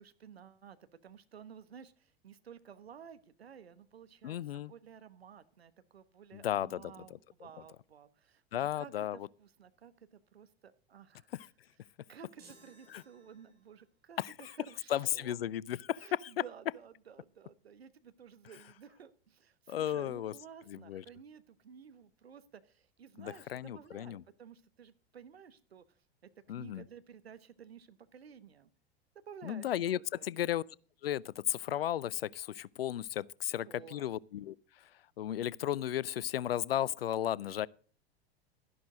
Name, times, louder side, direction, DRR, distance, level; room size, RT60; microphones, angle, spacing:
voice 1, 0.0-4.4 4.7-11.3 12.1-15.4 16.0-26.0 26.5-28.7 29.1-30.3 33.7-34.1, right 7 dB, 75° right, 1.2 m, -54 dB
voice 2, 4.2-4.7 6.3-6.9 8.5-9.3 11.3-11.5 12.9-13.0 14.2-14.5 14.9-16.3 19.7-20.3 20.7-21.0 23.2-24.2 26.5-26.8 29.4-30.6 31.0-37.7, left 11 dB, 70° left, 0.5 m, -35 dB
sound 1, 12.4-13.9, right 3 dB, 30° right, 6.3 m, -60 dB
12.5 x 11.5 x 3.8 m
figure-of-eight pair, 90°, 31 cm